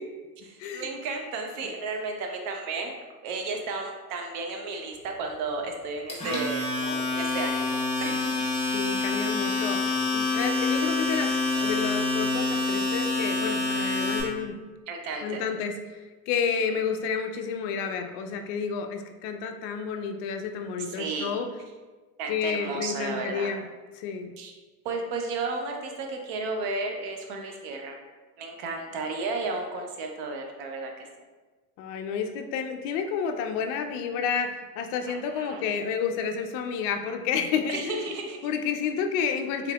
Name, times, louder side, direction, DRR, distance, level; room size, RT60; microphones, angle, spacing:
voice 1, 0.4-3.0 3.2-8.5 10.0-10.4 14.9-15.4 16.7-16.8 20.8-21.4 22.2-23.5 24.4-24.5 24.8-28.0 28.4-31.1 35.1-35.7 37.7-38.5, right 3 dB, 55° right, 3 dB, 0.7 m, -33 dB
Domestic sounds home sounds, 6.1-14.2, left 3 dB, 15° left, 1.2 m, -27 dB
voice 2, 8.7-14.6 15.2-15.7 16.3-21.5 22.3-23.6 24.0-24.3 31.8-38.1 38.4-39.7, left 6 dB, 50° left, 5 dB, 0.4 m, -30 dB
3.5 x 3.2 x 2.3 m, 1.3 s
hypercardioid pair, 100°, 46 cm